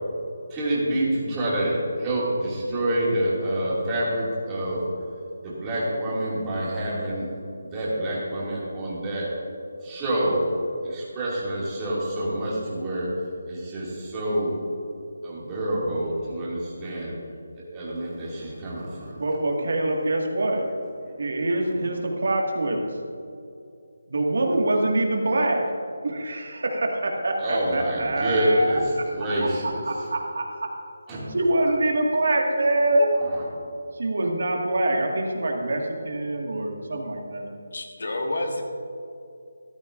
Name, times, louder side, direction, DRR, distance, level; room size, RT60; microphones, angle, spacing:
voice 1, 0.5-4.8 5.4-7.3 7.7-9.3 9.8-10.4 10.8-13.1 13.5-14.5 15.2-17.1 17.6-19.1 21.1-21.2 27.4-28.8 29.1-29.8 31.1-31.2 33.3-33.4, right 1 dB, 10° right, -7 dB, 2.3 m, -27 dB
voice 2, 19.2-20.7 21.2-22.9 24.1-25.6 26.0-30.7 31.3-33.1 34.0-37.5, right 1 dB, 60° right, 1 dB, 1.8 m, -25 dB
voice 3, 37.7-38.6, left 1 dB, 60° left, 2 dB, 1.7 m, -29 dB
14.0 x 12.5 x 2.5 m, 2.5 s
figure-of-eight pair, 175°, 0 cm